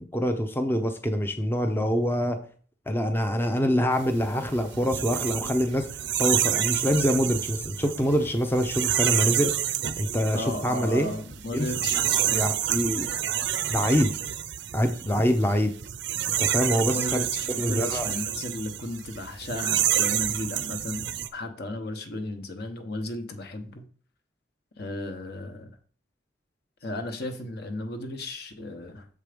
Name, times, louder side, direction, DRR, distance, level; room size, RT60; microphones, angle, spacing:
voice 1, 0.1-2.4 2.9-9.5 10.0-11.1 11.5-11.7 12.1-13.1 13.7-14.1 14.7-15.7 16.4-17.2 17.6-18.1, equal, 10° left, 6 dB, 0.5 m, -25 dB
sound 1, 4.0-21.3, right 11 dB, 65° right, 0.5 m, -28 dB
voice 2, 10.3-12.5 16.9-21.1 21.3-23.8 24.8-25.8 26.8-29.1, left 1 dB, 60° left, 7 dB, 1.1 m, -35 dB
6.8 x 4.7 x 5.0 m, 0.43 s
head